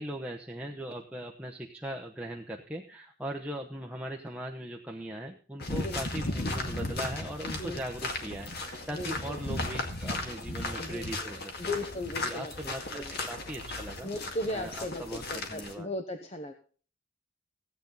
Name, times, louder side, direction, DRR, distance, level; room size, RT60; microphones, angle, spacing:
voice 1, 0.0-11.7 12.2-14.1 14.5-15.9, right 1 dB, 5° right, 0 dB, 0.9 m, -39 dB
sound 1, 5.6-15.7, left 2 dB, 50° left, 2.1 m, -36 dB
voice 2, 8.9-9.4 10.8-11.3 11.6-13.2 14.0-16.5, left 1 dB, 30° left, 6 dB, 1.0 m, -37 dB
16.5 x 8.9 x 4.0 m, 0.41 s
head